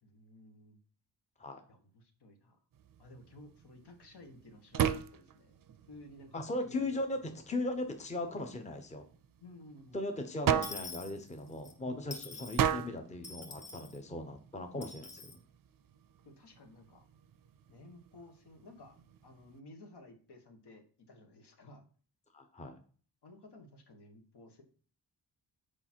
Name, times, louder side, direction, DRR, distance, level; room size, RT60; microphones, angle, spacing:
voice 1, 0.0-0.8 1.7-2.6 3.0-5.5 5.9-7.0 9.4-10.1 16.2-17.1 17.7-19.0 19.2-21.8 23.2-24.6, left 1 dB, 65° left, 5 dB, 1.5 m, -55 dB
sound 1, 2.7-19.6, right 9 dB, 50° right, 0.5 m, -39 dB
voice 2, 6.3-9.0 9.9-15.3 22.3-22.8, left 2 dB, 15° left, 5 dB, 0.9 m, -38 dB
Dishes pots and pans / Coin (dropping), 10.6-11.7 12.1-12.7 13.2-14.0 14.8-15.4, left 4 dB, 35° left, 1.3 m, -46 dB
6.8 x 5.0 x 4.5 m, 0.43 s
wide cardioid pair, 120°, 43 cm